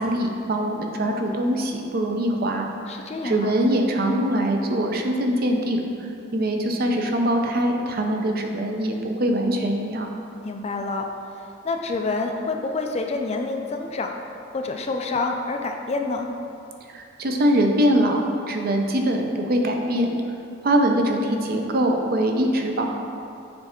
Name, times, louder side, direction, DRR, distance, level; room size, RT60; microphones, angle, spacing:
voice 1, 0.0-2.7 3.2-5.9 6.3-10.1 16.9-18.2 18.5-20.1 20.6-22.9, right 1 dB, 50° right, 2 dB, 0.6 m, -23 dB
voice 2, 2.9-3.6 10.4-11.1 11.6-14.1 14.5-16.3, left 3 dB, 35° left, 3 dB, 0.4 m, -27 dB
6.9 x 3.3 x 4.4 m, 2.6 s
head